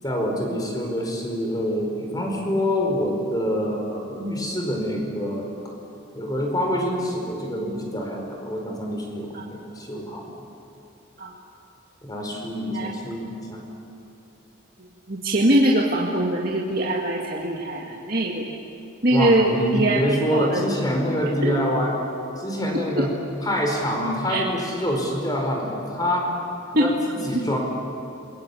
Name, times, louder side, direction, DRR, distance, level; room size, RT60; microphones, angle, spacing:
voice 1, 0.0-5.5 6.1-10.2 12.0-13.6 19.1-21.9 22.4-23.1 23.4-26.3 26.8-27.6, equal, 20° left, 1 dB, 4.9 m, -26 dB
voice 2, 15.1-18.4 19.0-20.0 20.3-20.6 21.4-21.5 24.3-24.4 26.7-26.9, right 1 dB, 50° right, -2 dB, 2.1 m, -22 dB
27.5 x 22.5 x 8.5 m, 2.6 s
head